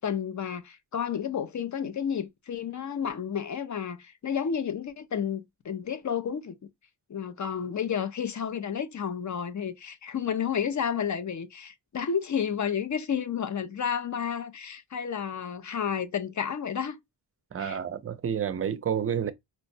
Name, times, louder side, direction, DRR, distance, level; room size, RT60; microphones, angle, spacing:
voice 1, 0.0-6.6 7.1-17.0 17.6-17.8, left 7 dB, 45° left, 0.4 m, -31 dB
voice 2, 17.5-19.3, right 8 dB, 35° right, 0.4 m, -29 dB
4.4 x 2.0 x 2.6 m
wide cardioid pair, 105°, 42 cm